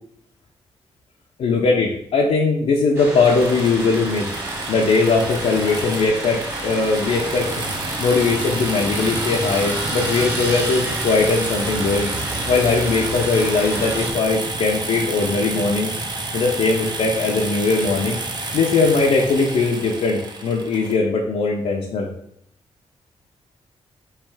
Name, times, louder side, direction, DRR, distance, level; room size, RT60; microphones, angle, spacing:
voice 1, 1.4-4.3 4.7-7.5 8.0-12.1 12.5-15.9 16.3-18.2 18.5-22.1, left 4 dB, 75° left, -1 dB, 0.6 m, -20 dB
sound 1, 2.9-14.1, right 1 dB, 25° right, 1.5 m, -30 dB
sound 2, 3.2-21.0, right 2 dB, 40° right, 0.7 m, -29 dB
3.3 x 3.1 x 4.7 m, 0.72 s
cardioid pair, 100°, 11 cm